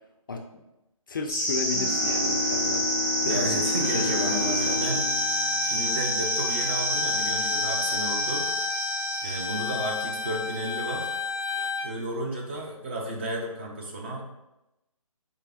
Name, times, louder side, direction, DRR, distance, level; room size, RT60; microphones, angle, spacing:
voice 1, 0.3-0.6 1.1-2.9 3.2-3.6 3.9-4.8, left 4 dB, 35° left, 3 dB, 0.4 m, -32 dB
sound 1, 1.3-10.4, equal, 5° right, 0.9 m, -28 dB
sound 2, 1.7-6.4, left 2 dB, 35° right, 1.3 m, -32 dB
voice 2, 3.2-8.5 9.2-11.1 11.8-14.2, right 1 dB, 20° right, -1 dB, 0.5 m, -33 dB
Bowed string instrument, 3.8-11.9, left 4 dB, 65° right, 1.1 m, -32 dB
4.1 x 3.3 x 3.5 m, 0.93 s
figure-of-eight pair, 150°, 18 cm